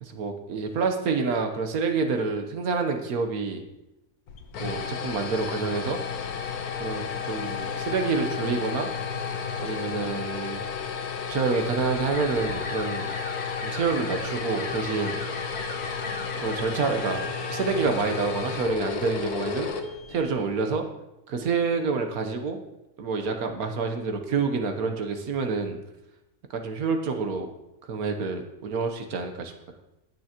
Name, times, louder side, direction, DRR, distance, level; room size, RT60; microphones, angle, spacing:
voice 1, 0.0-3.6 4.6-6.0 6.8-8.9 9.6-10.6 11.3-13.1 13.6-15.2 16.4-19.7 20.1-20.8 21.3-22.6 23.0-25.8 26.5-27.5 27.9-29.5, right 4 dB, 75° right, 5 dB, 1.5 m, -28 dB
sound 1, 4.3-20.5, left 6 dB, 75° left, 1.4 m, -32 dB
sound 2, 12.1-17.6, left 2 dB, 45° left, 1.3 m, -39 dB
18.0 x 6.1 x 2.9 m, 0.92 s
omnidirectional pair, 1.6 m